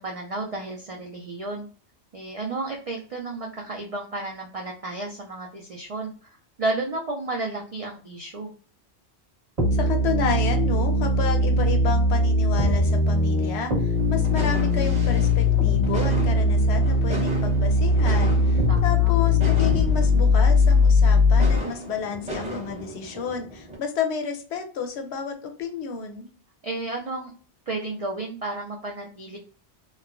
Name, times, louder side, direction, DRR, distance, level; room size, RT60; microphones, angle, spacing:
voice 1, 0.0-1.7 2.1-6.3 6.6-8.5 18.7-19.1 26.6-27.3 27.7-29.4, right 2 dB, 65° right, 0 dB, 0.3 m, -32 dB
sound 1, 9.6-21.6, left 2 dB, 30° right, 1.1 m, -20 dB
voice 2, 9.7-26.3, left 6 dB, 75° left, 6 dB, 0.8 m, -31 dB
sound 2, 13.9-23.8, right 1 dB, 5° right, 0.7 m, -36 dB
3.0 x 2.1 x 2.4 m, 0.39 s
omnidirectional pair, 1.2 m